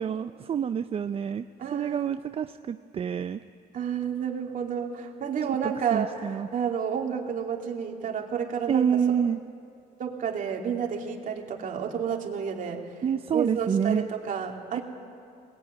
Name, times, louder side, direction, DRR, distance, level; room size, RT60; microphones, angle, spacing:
voice 1, 0.0-1.4 1.7-3.4 5.9-6.5 8.7-9.4 13.0-14.1 14.7-14.8, right 8 dB, 35° right, 10 dB, 0.5 m, -27 dB
voice 2, 1.6-2.1 3.7-8.9 10.0-12.8 13.3-14.8, right 7 dB, 50° right, 1 dB, 2.8 m, -30 dB
20.0 x 18.5 x 9.6 m, 2.4 s
cardioid pair, 110°, 17 cm